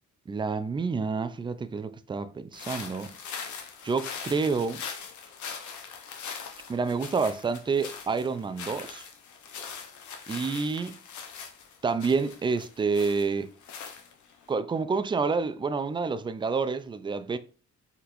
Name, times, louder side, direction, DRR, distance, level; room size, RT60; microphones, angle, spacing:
voice 1, 0.3-3.1 3.8-4.8 6.7-9.1 10.3-11.0 11.8-13.5 14.5-17.4, right 4 dB, 15° right, 0.3 m, -28 dB
sound 1, 2.5-14.5, left 6 dB, 70° left, 0.9 m, -41 dB
4.3 x 4.1 x 2.6 m
cardioid pair, 90°, 30 cm